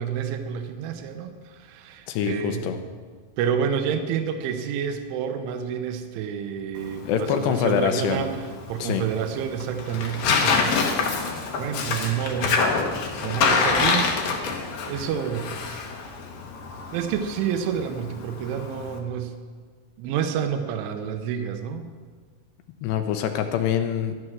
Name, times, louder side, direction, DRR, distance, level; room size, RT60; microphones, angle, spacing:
voice 1, 0.0-2.7 3.4-8.4 8.7-12.6 13.2-14.5 14.9-15.5 16.9-19.3 20.0-21.9, right 8 dB, 85° right, 7 dB, 3.3 m, -29 dB
voice 2, 2.1-2.8 7.0-8.3 8.8-9.0 22.8-24.2, left 9 dB, 80° left, 7 dB, 2.7 m, -25 dB
Tearing, 6.8-19.0, left 5 dB, 60° left, 2.6 m, -26 dB
13.0 x 11.0 x 6.2 m, 1.6 s
omnidirectional pair, 5.4 m